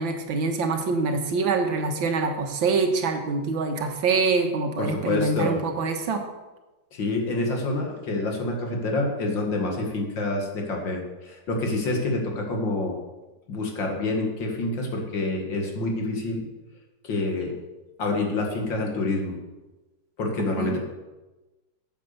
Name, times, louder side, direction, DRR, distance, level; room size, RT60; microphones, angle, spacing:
voice 1, 0.0-6.2 20.6-20.8, right 4 dB, 90° right, 5 dB, 2.1 m, -25 dB
voice 2, 4.8-5.6 6.9-13.0 13.5-16.5 17.0-17.5 18.0-19.4 20.2-20.8, left 2 dB, 75° left, 1 dB, 2.7 m, -27 dB
9.4 x 8.4 x 6.7 m, 1.1 s
omnidirectional pair, 2.1 m